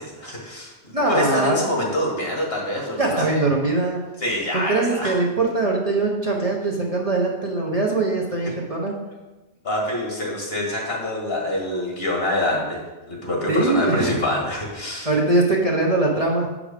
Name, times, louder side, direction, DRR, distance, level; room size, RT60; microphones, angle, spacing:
voice 1, 0.0-3.4 4.2-5.1 8.4-8.5 9.6-12.8 13.1-15.1, left 1 dB, 55° left, -2 dB, 2.1 m, -26 dB
voice 2, 0.9-1.6 3.0-4.0 4.5-8.9 13.5-14.2 15.0-16.5, right 2 dB, 35° right, -1 dB, 0.9 m, -21 dB
7.7 x 5.0 x 5.1 m, 1.1 s
omnidirectional pair, 1.2 m